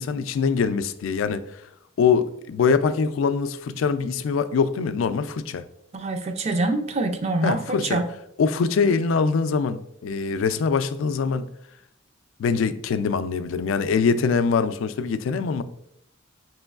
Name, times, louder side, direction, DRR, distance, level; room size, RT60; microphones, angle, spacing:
voice 1, 0.0-1.4 2.0-5.6 7.4-8.0 8.4-11.5 12.4-15.6, left 5 dB, 85° left, 0.3 m, -23 dB
voice 2, 5.9-8.0, right 2 dB, 35° right, 0.4 m, -25 dB
5.2 x 3.0 x 2.3 m
head